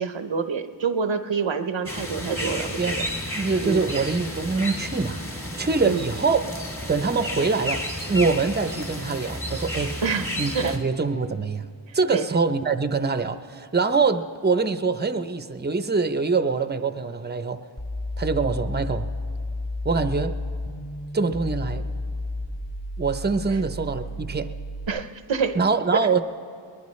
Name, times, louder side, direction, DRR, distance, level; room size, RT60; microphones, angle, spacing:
voice 1, 0.0-3.1 3.6-3.9 5.8-6.1 10.0-10.8 11.9-12.2 24.9-25.6 25.9-26.2, right 5 dB, 85° right, 9 dB, 0.8 m, -27 dB
sound 1, 1.9-10.8, equal, 30° left, 2.3 m, -32 dB
voice 2, 3.4-5.2 5.6-6.4 6.9-10.0 10.4-11.7 11.9-17.6 18.2-19.1 19.8-20.4 21.1-21.8 23.0-24.5 25.6-26.2, right 4 dB, 25° right, 10 dB, 0.6 m, -24 dB
sound 2, 17.8-24.9, left 1 dB, 45° left, 3.9 m, -32 dB
21.5 x 20.0 x 3.2 m, 2.4 s
wide cardioid pair, 55°, 44 cm